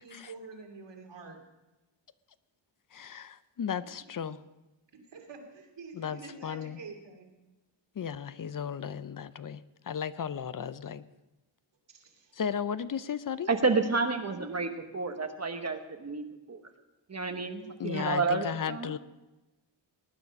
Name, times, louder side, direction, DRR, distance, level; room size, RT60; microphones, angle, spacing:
voice 1, 0.0-1.4 4.9-7.3 11.9-12.3 14.3-14.6, right 4 dB, 65° right, 3 dB, 2.7 m, -47 dB
voice 2, 2.9-4.4 5.9-6.8 8.0-9.6 9.9-11.0 12.3-13.5 17.8-19.0, left 7 dB, 45° left, 15 dB, 0.6 m, -35 dB
voice 3, 13.5-16.6 17.1-18.9, right 4 dB, 35° right, 6 dB, 1.1 m, -30 dB
18.5 x 9.8 x 5.3 m, 1.1 s
wide cardioid pair, 95°, 46 cm